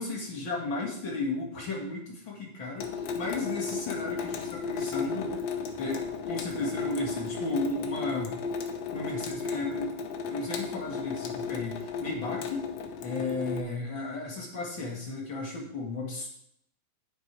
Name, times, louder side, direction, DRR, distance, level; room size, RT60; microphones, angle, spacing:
voice 1, 0.0-5.4 5.8-8.4 8.9-10.0 10.3-12.7 13.0-16.3, left 2 dB, 40° left, -2 dB, 2.1 m, -34 dB
Water tap faucet / Sink (filling or washing) / Drip, 2.8-13.6, left 5 dB, 70° left, 1.6 m, -34 dB
8.4 x 7.9 x 4.8 m, 0.73 s
omnidirectional pair, 4.1 m